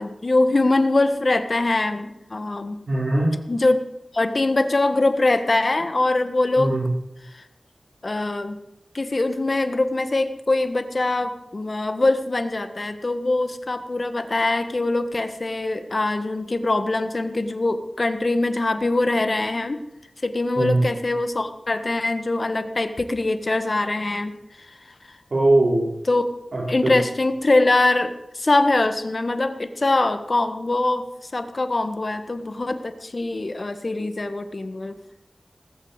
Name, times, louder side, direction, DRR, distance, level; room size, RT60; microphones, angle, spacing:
voice 1, 0.0-2.8 3.5-3.8 4.1-6.8 7.3-7.4 8.0-8.6 8.9-19.8 20.2-24.4 24.7-24.8 25.1-25.2 26.1-26.2 26.7-34.9, left 2 dB, 50° left, 9 dB, 1.5 m, -23 dB
voice 2, 2.9-3.3 6.6-6.9 20.5-20.8 25.3-25.9 26.5-27.0, right 2 dB, 70° right, -4 dB, 4.6 m, -20 dB
19.5 x 8.7 x 8.2 m, 0.86 s
wide cardioid pair, 80°, 0 cm